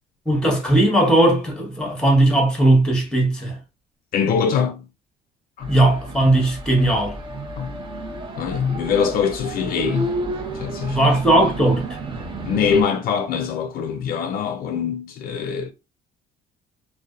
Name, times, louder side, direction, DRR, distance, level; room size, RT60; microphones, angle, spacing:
voice 1, 0.3-3.6 5.7-7.2 10.9-11.8, right 1 dB, 5° left, 0.9 m, -18 dB
voice 2, 4.1-4.8 5.6-5.7 7.6-7.7 8.3-10.1 10.5-11.1 12.4-15.7, left 7 dB, 60° left, 0.4 m, -23 dB
sound 1, 5.6-12.8, right 2 dB, 30° right, 0.6 m, -31 dB
2.6 x 2.1 x 2.3 m
cardioid pair, 110°, 17 cm